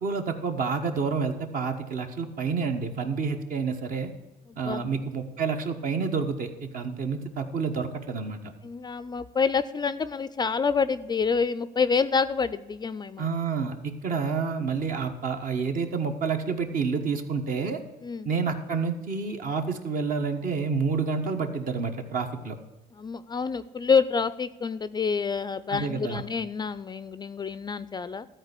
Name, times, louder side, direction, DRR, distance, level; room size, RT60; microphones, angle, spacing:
voice 1, 0.0-4.1 4.6-8.4 13.2-17.8 18.2-22.6 25.7-26.2, right 5 dB, 55° right, 6 dB, 1.3 m, -29 dB
voice 2, 4.5-4.8 8.6-13.3 18.0-18.3 22.9-28.3, left 5 dB, 25° left, 15 dB, 0.4 m, -27 dB
13.5 x 4.5 x 8.2 m, 1.1 s
cardioid pair, 110°, 17 cm